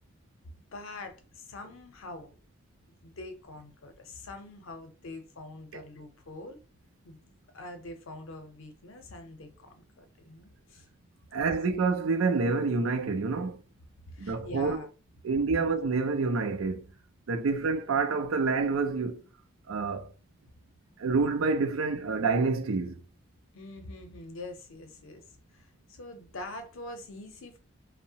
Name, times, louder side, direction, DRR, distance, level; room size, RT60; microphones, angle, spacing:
voice 1, 0.7-2.3 3.0-6.6 7.0-7.2 7.5-10.9 11.3-11.4 14.1-14.9 15.5-15.7 17.4-17.5 23.5-27.6, left 2 dB, 80° left, 0.6 m, -44 dB
voice 2, 11.3-13.6 14.2-14.8 15.2-16.9 17.3-19.2 19.7-20.1 21.0-23.0, right 4 dB, 90° right, 0.5 m, -27 dB
2.7 x 2.0 x 2.7 m
head